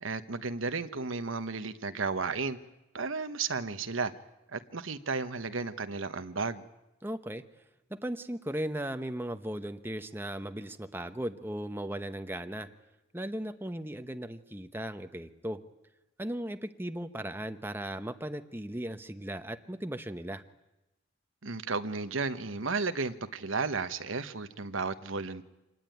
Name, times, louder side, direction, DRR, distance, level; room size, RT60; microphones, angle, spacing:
voice 1, 0.0-2.6 2.9-4.1 4.5-6.6 21.4-25.4, right 4 dB, 75° right, 10 dB, 1.2 m, -33 dB
voice 2, 7.0-7.4 7.9-12.7 13.1-15.6 16.2-20.4, right 1 dB, 10° right, 8 dB, 0.9 m, -37 dB
26.5 x 19.5 x 9.3 m, 0.99 s
head